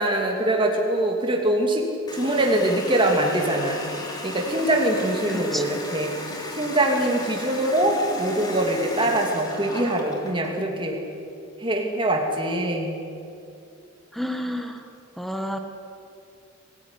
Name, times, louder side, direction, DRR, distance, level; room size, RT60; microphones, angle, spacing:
voice 1, 0.0-1.9 2.1-3.8 4.2-6.1 6.5-11.0 11.6-13.0, right 1 dB, 25° right, 1 dB, 2.7 m, -23 dB
Water tap faucet, 2.1-10.6, left 1 dB, 20° left, 3.3 m, -35 dB
voice 2, 5.3-5.7 14.1-14.8 15.2-15.6, equal, ahead, 5 dB, 1.8 m, -30 dB
25.0 x 16.5 x 9.9 m, 2.6 s
head